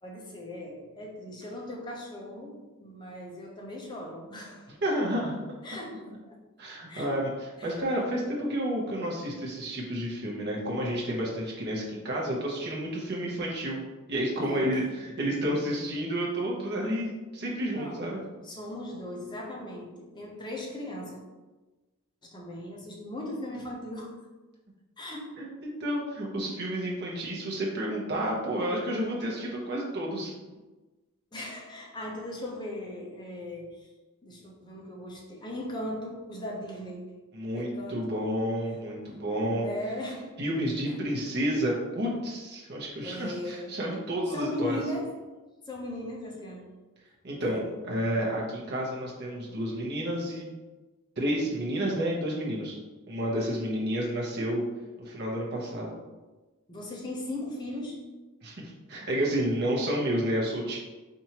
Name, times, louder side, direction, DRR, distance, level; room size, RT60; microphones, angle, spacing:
voice 1, 0.0-4.7 5.6-6.4 6.9-7.2 7.6-7.8 14.3-14.8 17.7-21.2 22.2-24.2 25.0-25.3 31.3-33.9 34.2-37.2 37.5-38.2 39.5-40.4 40.9-41.0 43.0-43.8 44.3-45.2 45.7-46.7 47.4-47.7 56.7-58.1, left 1 dB, 20° left, -2 dB, 0.6 m, -38 dB
voice 2, 4.8-5.4 6.6-7.3 7.6-18.2 25.4-30.3 37.3-39.7 40.4-44.8 47.2-50.5 51.2-52.8 53.1-54.6 55.0-55.9 58.4-60.8, equal, 50° right, -3 dB, 0.9 m, -30 dB
4.5 x 2.6 x 2.9 m, 1.2 s
head